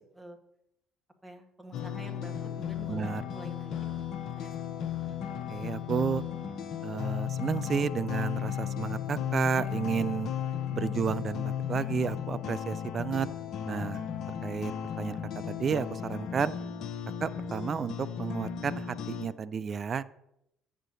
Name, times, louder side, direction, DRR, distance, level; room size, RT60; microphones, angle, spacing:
voice 1, 1.2-3.8 4.4-4.7 5.0-5.2, equal, 10° right, 4 dB, 1.7 m, -48 dB
sound 1, 1.7-19.3, left 9 dB, 60° left, 0.8 m, -35 dB
voice 2, 2.9-3.2 5.5-6.2 6.8-10.3 10.7-13.3 13.7-14.0 14.4-15.2 15.5-16.5 17.2-20.0, right 7 dB, 45° right, 16 dB, 0.4 m, -32 dB
8.8 x 6.5 x 4.0 m, 0.81 s
hypercardioid pair, 55°, 0 cm